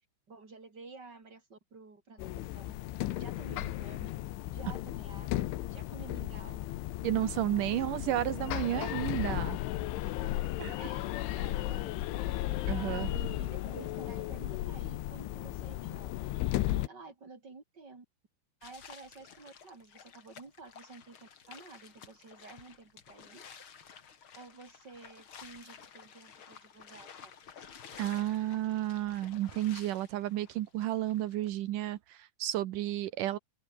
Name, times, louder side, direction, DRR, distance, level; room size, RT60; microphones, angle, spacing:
voice 1, 0.3-2.8 3.2-4.1 4.5-5.4 5.7-6.6 7.7-7.8 8.2-8.3 10.8-11.1 11.3-16.3 16.9-18.1 18.6-23.6 24.3-27.3, right 3 dB, 25° right, 3.6 m, -51 dB
sound 1, 2.2-16.9, left 16 dB, 90° left, 3.7 m, -35 dB
voice 2, 7.0-9.6 10.6-10.7 12.7-13.1 28.0-33.4, right 13 dB, 85° right, 1.8 m, -32 dB
sound 2, 18.6-31.5, left 7 dB, 50° left, 1.6 m, -53 dB
open air
omnidirectional pair, 5.4 m